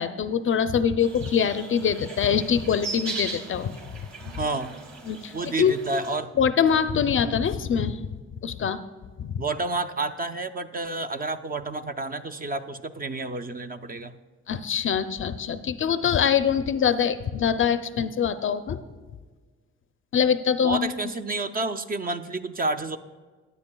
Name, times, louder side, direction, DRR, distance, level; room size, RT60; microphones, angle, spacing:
voice 1, 0.0-3.8 5.1-5.7 6.4-8.0 8.4-8.8 9.2-9.4 14.5-18.8 20.1-20.9, left 7 dB, 45° left, 12 dB, 0.5 m, -24 dB
sound 1, 1.0-6.2, right 3 dB, 65° right, 2.1 m, -39 dB
voice 2, 4.4-4.8 5.3-6.3 9.4-14.1 20.6-23.0, right 2 dB, 30° right, 9 dB, 0.5 m, -30 dB
16.0 x 9.7 x 2.3 m, 1.4 s
cardioid pair, 90°, 30 cm